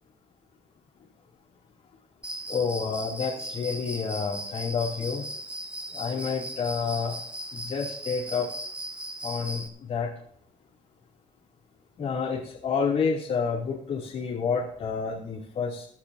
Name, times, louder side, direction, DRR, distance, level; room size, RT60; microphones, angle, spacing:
Cricket, 2.2-9.7, right 1 dB, 10° right, 1.9 m, -38 dB
voice 1, 2.5-5.3 5.9-7.2 7.5-8.5 9.2-10.1 12.0-15.9, left 5 dB, 65° left, -5 dB, 3.1 m, -29 dB
22.0 x 11.5 x 2.9 m, 0.62 s
cardioid pair, 95°, 13 cm